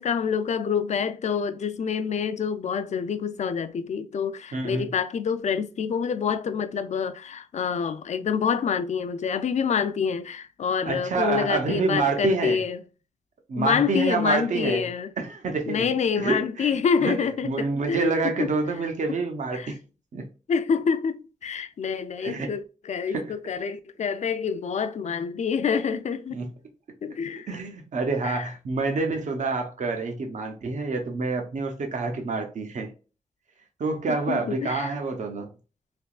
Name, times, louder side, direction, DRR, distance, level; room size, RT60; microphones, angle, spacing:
voice 1, 0.0-12.8 13.6-15.1 15.7-18.5 19.5-19.7 20.5-26.5 27.0-27.5 28.2-28.4 34.1-34.9, left 6 dB, 65° left, 0.4 m, -27 dB
voice 2, 4.5-4.9 10.9-12.6 13.5-14.9 15.2-15.8 16.2-17.2 17.4-19.8 20.1-20.2 22.2-22.5 23.1-23.3 26.3-26.5 27.5-32.9 33.8-35.5, right 3 dB, 75° right, 0.7 m, -27 dB
3.4 x 2.9 x 2.3 m
wide cardioid pair, 140°, 13 cm